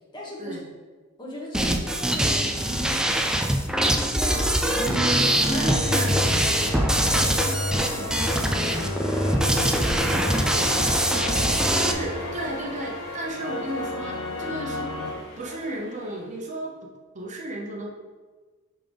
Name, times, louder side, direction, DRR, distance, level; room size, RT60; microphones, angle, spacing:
voice 1, 0.1-0.6 1.2-5.1 5.5-7.4 7.8-9.1 9.5-11.3 11.8-12.0 12.3-12.5, equal, 20° left, -3 dB, 1.4 m, -39 dB
sound 1, 1.5-11.9, right 1 dB, 5° right, 0.4 m, -23 dB
sound 2, 4.2-15.1, left 1 dB, 85° left, 1.1 m, -31 dB
voice 2, 4.9-6.1 11.7-14.9 15.4-16.7 17.1-17.9, right 1 dB, 35° right, -1 dB, 0.8 m, -33 dB
sound 3, 7.6-16.4, left 1 dB, 60° left, 2.1 m, -41 dB
10.5 x 3.7 x 3.4 m, 1.4 s
head